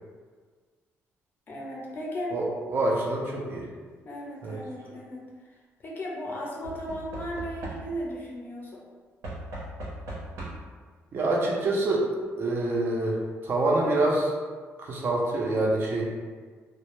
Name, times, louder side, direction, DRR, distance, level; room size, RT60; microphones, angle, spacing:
voice 1, 1.5-2.3 4.0-5.2 5.8-8.8, equal, 40° left, -3 dB, 0.5 m, -36 dB
voice 2, 2.3-3.7 4.4-4.6 11.1-12.1 12.4-13.2 13.4-14.3 14.8-16.1, right 2 dB, 45° right, -2 dB, 0.4 m, -26 dB
Knock / Wood, 4.4-4.9 6.6-8.2 9.2-10.8 11.9-12.0 12.2-12.3, right 1 dB, 85° right, 0.7 m, -39 dB
2.1 x 2.0 x 2.9 m, 1.5 s
cardioid pair, 135°, 5 cm